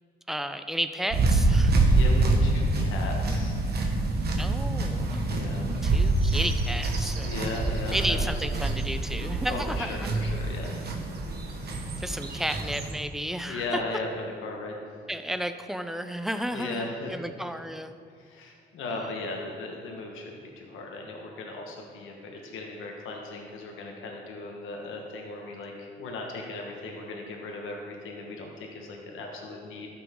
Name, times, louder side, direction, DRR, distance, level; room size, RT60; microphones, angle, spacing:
voice 1, 0.3-1.7 4.4-5.2 5.8-7.3 7.9-10.1 12.0-13.6 15.1-17.9 19.0-19.1, equal, ahead, 9 dB, 0.5 m, -32 dB
sound 1, 1.1-12.9, right 2 dB, 55° right, 1.3 m, -26 dB
voice 2, 1.9-3.6 5.3-5.7 7.2-8.5 9.5-10.9 13.5-14.8 16.5-17.2 18.2-29.9, left 2 dB, 85° left, 1 dB, 1.3 m, -37 dB
13.0 x 6.0 x 3.7 m, 2.2 s
cardioid pair, 90°, 20 cm